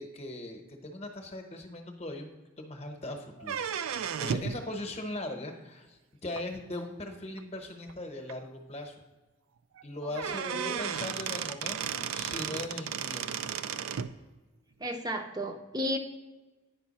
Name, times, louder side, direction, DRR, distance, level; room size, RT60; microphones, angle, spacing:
voice 1, 0.0-2.3 2.6-3.6 4.2-9.0 9.8-13.4, left 1 dB, 30° left, 4 dB, 0.9 m, -39 dB
sound 1, 3.4-4.6 6.3-6.4 7.4-7.5 7.9-8.0 8.3-8.4 9.8-9.9 10.1-14.1, right 7 dB, 90° right, 0.4 m, -34 dB
voice 2, 10.0-10.8 14.8-16.0, equal, 20° right, 6 dB, 0.6 m, -34 dB
9.3 x 5.5 x 4.1 m, 1.2 s
head